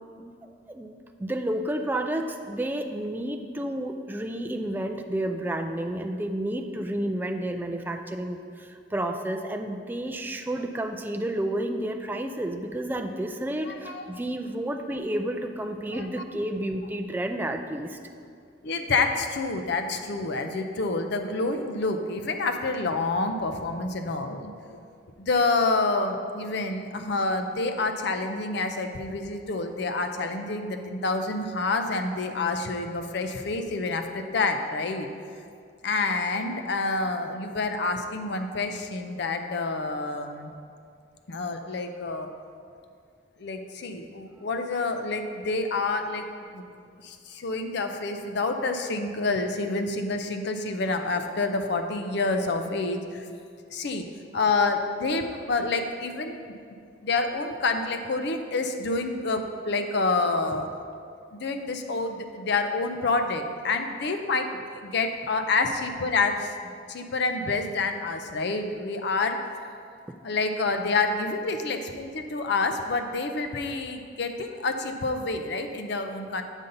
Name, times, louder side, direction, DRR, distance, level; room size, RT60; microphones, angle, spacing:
voice 1, 0.2-18.0, right 1 dB, 10° right, 4 dB, 0.3 m, -31 dB
voice 2, 13.7-14.1 15.9-16.1 18.6-24.5 25.2-35.1 35.8-40.5 41.3-42.3 43.4-46.2 46.5-46.7 47.0-53.3 53.7-54.1 54.3-56.4 57.0-60.7 61.3-69.4 70.2-76.4, left 3 dB, 65° left, 6 dB, 0.6 m, -28 dB
8.1 x 5.5 x 3.9 m, 2.3 s
head